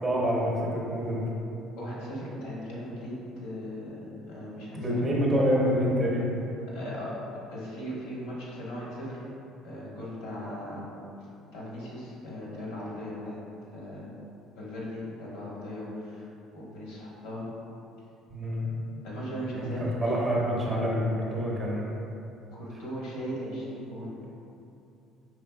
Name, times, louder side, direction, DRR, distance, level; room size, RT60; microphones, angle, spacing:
voice 1, 0.0-1.2 4.7-6.4 18.3-18.9 19.4-19.7 20.0-21.9, equal, 20° right, -4 dB, 0.6 m, -27 dB
voice 2, 1.8-5.0 6.7-9.2 9.6-10.9 11.5-13.4 13.7-14.1 14.6-16.3 16.5-17.4 19.0-20.2 22.5-24.1, equal, 80° left, -5 dB, 1.2 m, -38 dB
4.8 x 3.5 x 2.3 m, 2.8 s
cardioid pair, 160°, 0 cm